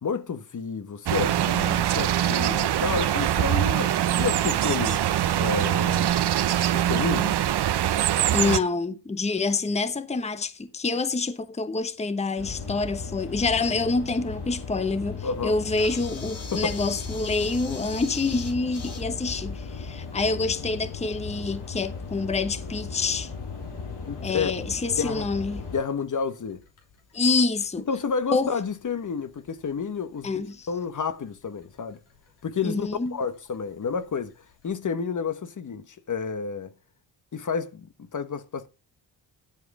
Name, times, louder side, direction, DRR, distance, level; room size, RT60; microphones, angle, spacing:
voice 1, 0.0-5.0 5.4-6.3 6.7-7.4 15.2-15.6 16.5-16.7 24.1-24.5 25.0-25.3 25.7-26.6 27.9-32.0 32.4-36.7 37.3-38.7, left 5 dB, 40° left, 1.1 m, -30 dB
sound 1, 1.1-8.6, right 11 dB, 55° right, 0.8 m, -23 dB
voice 2, 8.3-23.3 24.2-25.6 27.1-27.8 28.3-28.5 30.2-30.7 32.6-33.1, left 3 dB, 15° left, 0.9 m, -27 dB
sound 2, 12.4-25.8, left 4 dB, 60° left, 7.0 m, -36 dB
Camera, 15.3-34.7, left 4 dB, 80° left, 3.4 m, -49 dB
12.0 x 5.1 x 5.3 m
cardioid pair, 70°, 46 cm